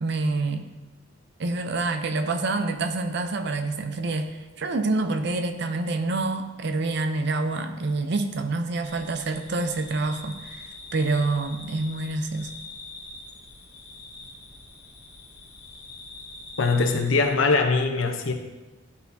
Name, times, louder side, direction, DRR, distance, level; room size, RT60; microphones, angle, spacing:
voice 1, 0.0-0.6 1.4-12.5, right 3 dB, 55° right, 8 dB, 0.5 m, -27 dB
sound 1, 8.8-17.3, left 3 dB, 55° left, 1.8 m, -44 dB
voice 2, 16.6-18.3, left 3 dB, 75° left, 5 dB, 0.7 m, -22 dB
11.5 x 4.1 x 2.7 m, 1.2 s
head